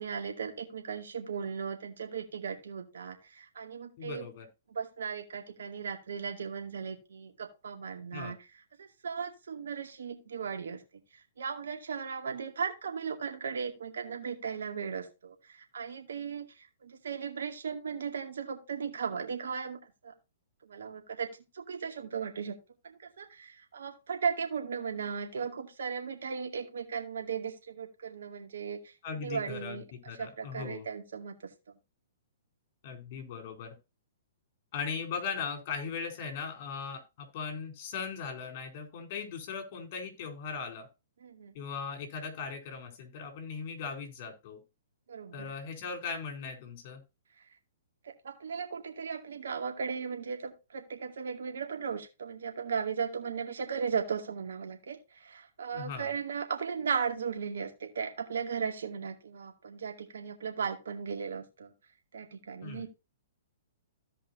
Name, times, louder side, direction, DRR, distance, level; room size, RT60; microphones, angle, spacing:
voice 1, 0.0-4.3 4.7-8.5 8.8-10.8 11.4-20.1 20.6-22.6 22.8-31.3 41.2-41.5 45.1-45.5 48.0-61.7 62.1-62.9, right 6 dB, 75° right, 4 dB, 2.3 m, -37 dB
voice 2, 4.0-4.5 8.1-8.3 29.0-29.8 30.1-30.9 32.8-33.7 34.7-40.9 41.5-44.6 45.3-47.0 55.7-56.1 62.6-62.9, left 5 dB, 45° left, 4 dB, 4.1 m, -38 dB
16.0 x 5.3 x 2.7 m, 0.27 s
hypercardioid pair, 125°, 0 cm